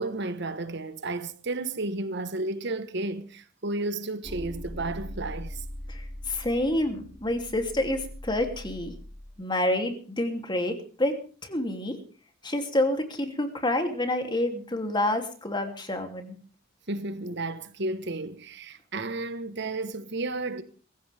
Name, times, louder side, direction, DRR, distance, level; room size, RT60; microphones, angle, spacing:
voice 1, 0.0-5.6 16.9-20.6, right 2 dB, 60° right, 1.4 m, -32 dB
sound 1, 4.2-9.3, left 1 dB, ahead, 5.0 m, -41 dB
voice 2, 5.9-8.9 9.4-11.2 11.4-12.0 12.4-16.4, left 1 dB, 25° left, 3.0 m, -28 dB
24.0 x 15.0 x 3.6 m
head